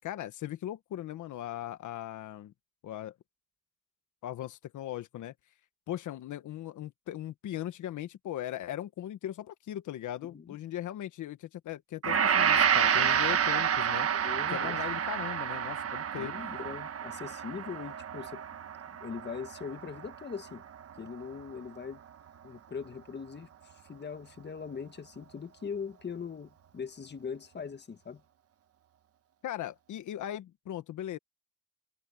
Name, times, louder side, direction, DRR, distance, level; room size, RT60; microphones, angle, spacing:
voice 1, 0.0-2.5 2.8-3.1 4.2-5.3 5.9-14.1 14.5-16.3 29.4-31.2, left 12 dB, 75° left, 1.5 m, -39 dB
Gong, 12.0-20.5 20.8-21.0, right 8 dB, 50° right, 1.4 m, -29 dB
voice 2, 14.1-14.8 16.2-18.4 19.0-20.6 21.0-22.0 22.4-28.2, left 6 dB, 35° left, 1.7 m, -41 dB
cardioid pair, 90°, 30 cm